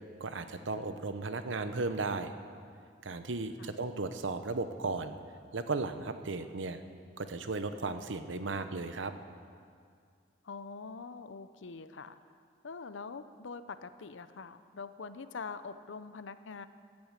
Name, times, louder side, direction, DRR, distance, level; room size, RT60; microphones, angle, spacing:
voice 1, 0.2-2.3 3.0-5.2 5.5-6.8 7.2-9.1, right 3 dB, 85° right, 9 dB, 0.8 m, -35 dB
voice 2, 10.4-12.2 12.6-16.7, left 4 dB, 85° left, 12 dB, 0.6 m, -44 dB
15.5 x 8.8 x 7.4 m, 2.2 s
head